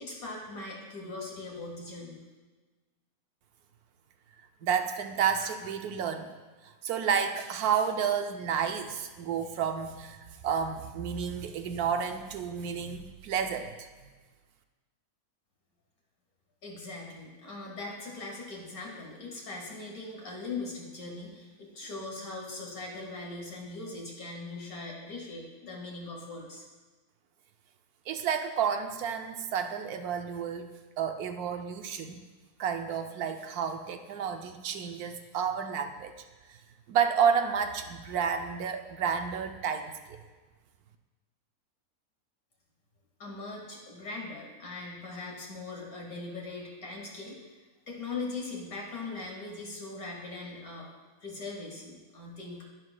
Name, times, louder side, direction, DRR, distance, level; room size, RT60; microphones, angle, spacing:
voice 1, 0.0-2.2 16.6-26.6 43.2-47.5 47.9-50.9 51.2-52.6, left 3 dB, 70° left, -1 dB, 2.3 m, -40 dB
voice 2, 4.6-6.3 6.8-10.2 10.4-13.9 28.1-32.2 32.6-36.1 36.5-36.6 36.9-40.2, right 7 dB, 85° right, 6 dB, 1.1 m, -30 dB
10.5 x 10.5 x 2.2 m, 1.3 s
omnidirectional pair, 1.6 m